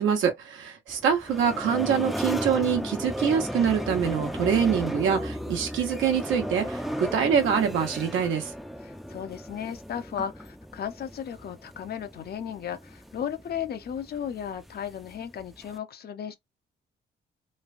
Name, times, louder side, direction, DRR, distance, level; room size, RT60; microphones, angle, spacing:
voice 1, 0.0-8.5, right 7 dB, 80° right, 1.0 m, -25 dB
sound 1, 0.9-15.8, equal, ahead, 0.5 m, -35 dB
voice 2, 8.8-16.4, left 8 dB, 55° left, 0.7 m, -35 dB
3.2 x 2.2 x 2.5 m
cardioid pair, 90°, 20 cm